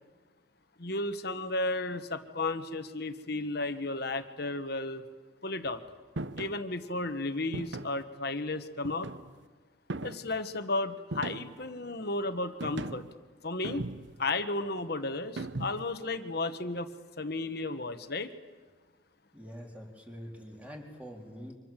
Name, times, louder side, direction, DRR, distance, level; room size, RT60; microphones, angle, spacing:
voice 1, 0.8-5.0 5.4-5.8 6.4-9.1 10.0-13.0 13.4-13.8 14.2-16.9 17.2-18.3, left 2 dB, 50° left, 9 dB, 1.4 m, -33 dB
sound 1, 6.2-6.6 7.5-8.0 8.8-9.4 9.9-10.4 11.1-11.7 12.6-13.1 13.6-14.3 15.4-16.0, right 2 dB, 60° right, 0.9 m, -38 dB
voice 2, 19.3-21.5, equal, 5° right, 0 dB, 3.9 m, -45 dB
29.0 x 25.5 x 7.6 m, 1.4 s
head